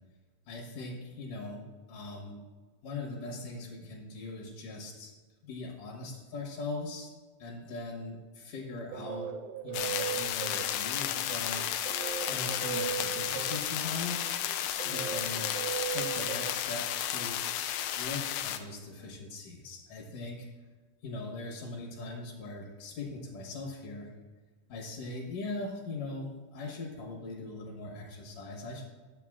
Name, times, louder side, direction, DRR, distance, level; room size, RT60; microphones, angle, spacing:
voice 1, 0.5-2.4 2.8-5.1 5.4-7.1 7.4-9.3 9.6-12.0 12.3-14.3 14.8-15.6 15.9-17.7 18.0-20.5 21.0-24.1 24.7-28.8, left 2 dB, 70° left, 0 dB, 2.7 m, -40 dB
sound 1, 8.6-17.3, right 9 dB, 80° right, 2.0 m, -38 dB
sound 2, 9.7-18.6, left 11 dB, 85° left, 2.4 m, -33 dB
11.0 x 7.0 x 3.6 m, 1.4 s
omnidirectional pair, 4.0 m